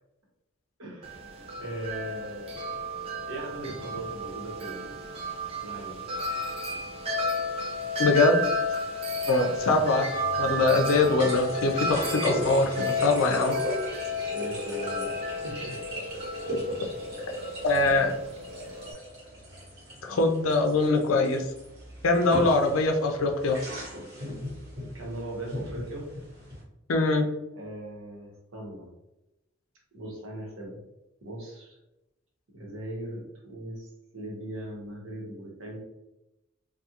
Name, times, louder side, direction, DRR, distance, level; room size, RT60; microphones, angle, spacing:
voice 1, 0.8-1.3 1.6-2.7 3.3-5.0 5.6-6.0 14.3-15.8 16.4-16.8 24.9-26.1 27.5-28.9 29.9-30.8 31.2-31.8 32.5-33.9 34.1-35.8, right 1 dB, 85° right, -2 dB, 1.0 m, -39 dB
Wind chime, 1.0-18.9, left 1 dB, 30° right, 0.4 m, -33 dB
voice 2, 8.0-8.4 9.3-10.1 10.4-13.6 17.6-18.1 20.0-21.5 22.0-23.6 26.9-27.3, left 3 dB, 90° left, 3 dB, 0.5 m, -23 dB
sound 1, 9.6-26.6, equal, 55° right, 1.1 m, -38 dB
2.4 x 2.3 x 2.8 m, 0.94 s
head